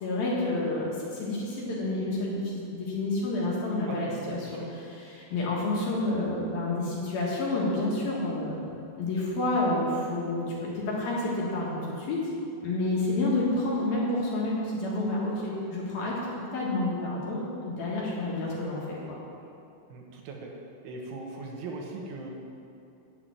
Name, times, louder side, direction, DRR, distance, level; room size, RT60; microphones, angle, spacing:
voice 1, 0.0-8.7 9.0-12.2 12.6-16.2 16.5-19.2, left 2 dB, 60° left, -5 dB, 3.1 m, -29 dB
voice 2, 3.8-4.7 5.3-5.5 19.9-20.5 20.8-22.3, right 3 dB, 80° right, 0 dB, 3.7 m, -39 dB
8.7 x 8.4 x 7.7 m, 2.6 s
omnidirectional pair, 5.5 m